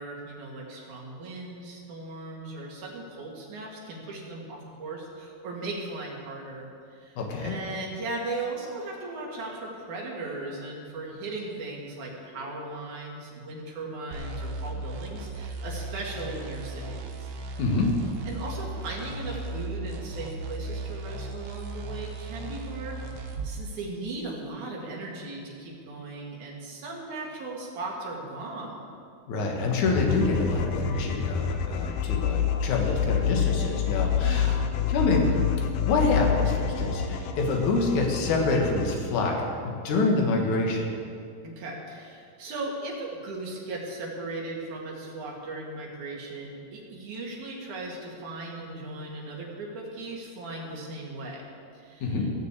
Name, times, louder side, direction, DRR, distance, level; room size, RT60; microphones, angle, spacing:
voice 1, 0.0-6.7 7.0-17.6 18.3-23.2 23.4-28.8 34.2-34.6 41.4-51.4 51.7-52.2, right 2 dB, 65° right, -3 dB, 3.6 m, -37 dB
voice 2, 7.2-7.5 17.6-17.9 29.3-34.6 34.9-35.3 35.9-40.9 52.0-52.3, left 3 dB, 65° left, 1 dB, 3.0 m, -26 dB
sound 1, 14.1-23.6, right 2 dB, 80° right, 2.7 m, -36 dB
sound 2, 29.9-38.9, left 8 dB, 85° left, 2.5 m, -27 dB
16.5 x 6.6 x 8.4 m, 2.4 s
omnidirectional pair, 3.8 m